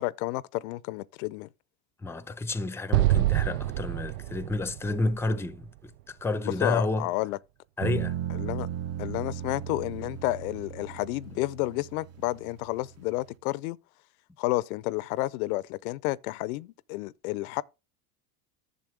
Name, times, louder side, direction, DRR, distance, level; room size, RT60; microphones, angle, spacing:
voice 1, 0.0-1.5 6.4-7.4 8.3-8.7 9.0-13.8 14.4-17.6, left 18 dB, 75° left, 0.6 m, -31 dB
voice 2, 2.0-7.1 7.8-8.2, left 2 dB, 5° left, 0.6 m, -30 dB
Explosion, 2.9-6.2, right 15 dB, 80° right, 0.5 m, -27 dB
sound 1, 7.8-13.3, right 10 dB, 35° right, 0.8 m, -37 dB
11.0 x 6.9 x 3.3 m
hypercardioid pair, 90°, 44 cm